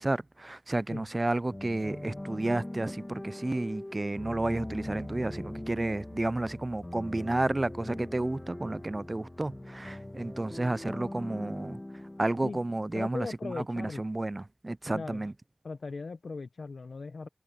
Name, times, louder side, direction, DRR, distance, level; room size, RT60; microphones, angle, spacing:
voice 1, 0.0-11.8 12.2-15.3, right 2 dB, 35° right, 0.3 m, -31 dB
sound 1, 1.5-13.2, left 1 dB, 25° left, 2.0 m, -42 dB
voice 2, 12.9-14.0 14.9-15.3 15.6-17.3, left 4 dB, 85° left, 0.6 m, -38 dB
wide cardioid pair, 60°, 0 cm